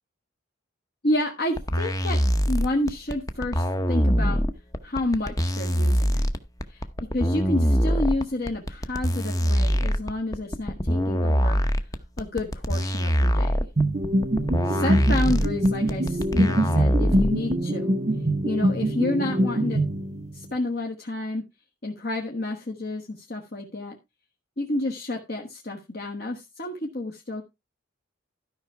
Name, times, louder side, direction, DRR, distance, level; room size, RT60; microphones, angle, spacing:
voice 1, 1.0-4.4 4.8-6.3 6.7-6.8 7.1-11.6 12.2-13.7 14.7-18.0 18.4-19.8 20.3-21.4 21.8-24.0 24.6-27.4, left 1 dB, 50° left, 1 dB, 1.4 m, -30 dB
sound 1, 1.6-17.5, equal, 15° left, 0.8 m, -23 dB
sound 2, 13.8-20.5, right 1 dB, 35° right, 0.8 m, -24 dB
12.5 x 5.6 x 4.7 m, 0.24 s
head